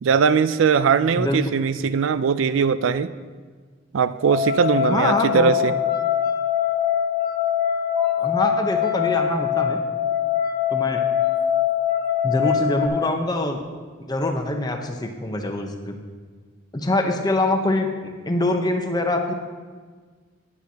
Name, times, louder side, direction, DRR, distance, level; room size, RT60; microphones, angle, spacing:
voice 1, 0.0-3.1 3.9-5.8 9.0-9.1 12.3-12.5, right 6 dB, 85° right, 14 dB, 0.4 m, -20 dB
sound 1, 4.2-12.9, left 9 dB, 20° right, 0.8 m, -23 dB
voice 2, 4.8-5.5 8.2-9.8 10.7-11.0 12.2-13.6 14.1-15.9 16.7-19.3, left 2 dB, 20° left, 4 dB, 0.8 m, -24 dB
12.5 x 9.8 x 2.9 m, 1.5 s
head